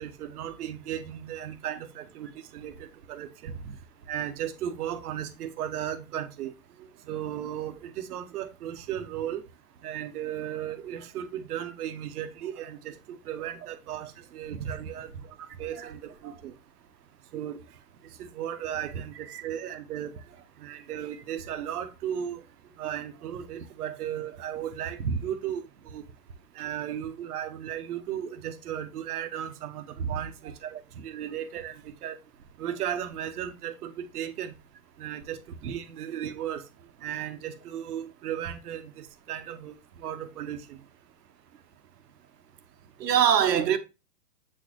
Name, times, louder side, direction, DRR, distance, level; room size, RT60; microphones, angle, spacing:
voice 1, 0.0-3.5 4.1-6.5 6.8-9.4 9.8-15.1 15.6-16.5 17.3-17.6 18.2-20.1 20.6-22.4 22.8-26.0 26.5-32.2 32.6-34.5 35.0-36.6 37.0-40.8, right 10 dB, 65° right, 1.0 m, -36 dB
voice 2, 43.0-43.8, right 8 dB, 85° right, 1.1 m, -24 dB
7.4 x 4.3 x 3.0 m
hypercardioid pair, 140°, 48 cm